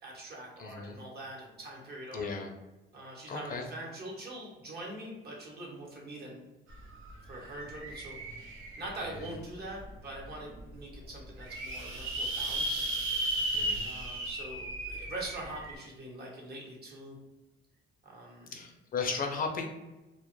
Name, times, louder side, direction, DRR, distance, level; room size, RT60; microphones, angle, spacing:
voice 1, 0.0-2.3 2.9-6.4 7.3-12.9 13.8-17.2 18.0-18.6, right 1 dB, 55° right, -2 dB, 0.9 m, -43 dB
voice 2, 0.6-1.0 2.1-2.5 3.3-3.6 13.5-13.9 18.5-19.7, left 5 dB, 45° left, 3 dB, 0.4 m, -35 dB
sound 1, 6.7-6.8 7.1-9.2 9.8-9.9 10.3-10.4 10.5-10.6 11.2-15.8, right 1 dB, 90° right, 0.6 m, -35 dB
2.1 x 2.0 x 3.0 m, 1.1 s
cardioid pair, 90°, 20 cm